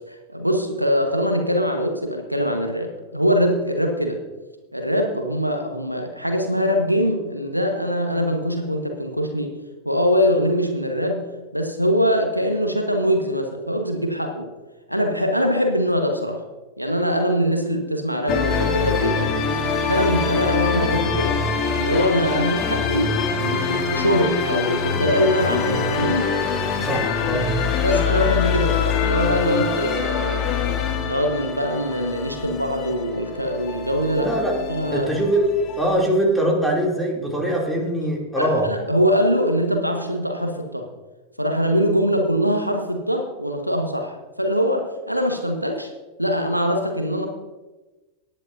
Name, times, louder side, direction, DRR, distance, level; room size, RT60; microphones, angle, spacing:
voice 1, 0.1-4.2 4.7-9.6 9.8-14.5 14.9-16.4 16.8-19.3 19.9-21.4 21.7-26.3 27.8-30.5 31.0-34.3 34.7-35.1 38.3-40.9 41.4-45.9 46.2-47.3, equal, 90° right, 4 dB, 1.3 m, -23 dB
sound 1, 18.3-36.0, left 6 dB, 35° left, 1.5 m, -24 dB
voice 2, 26.8-27.5 34.1-34.5 34.9-35.5 35.8-38.7, right 1 dB, ahead, -1 dB, 2.8 m, -22 dB
18.0 x 10.0 x 2.6 m, 1.2 s
figure-of-eight pair, 90°, 0 cm